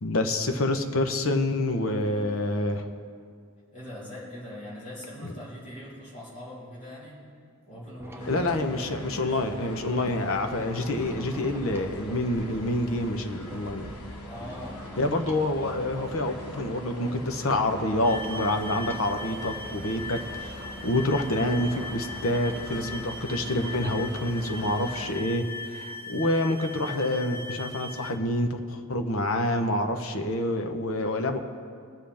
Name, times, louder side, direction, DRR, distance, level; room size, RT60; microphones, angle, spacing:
voice 1, 0.0-2.9 5.2-5.3 8.3-13.9 15.0-31.4, left 1 dB, 65° left, 6 dB, 0.9 m, -27 dB
voice 2, 3.7-7.2 7.7-8.6 14.3-14.8, left 1 dB, 35° left, -7 dB, 3.4 m, -41 dB
sound 1, 8.0-23.2, right 1 dB, 10° right, 0.7 m, -46 dB
sound 2, 8.2-25.2, left 1 dB, 80° left, 1.3 m, -42 dB
sound 3, 18.0-28.2, left 3 dB, 10° left, 0.3 m, -39 dB
21.0 x 7.5 x 3.5 m, 2.2 s
head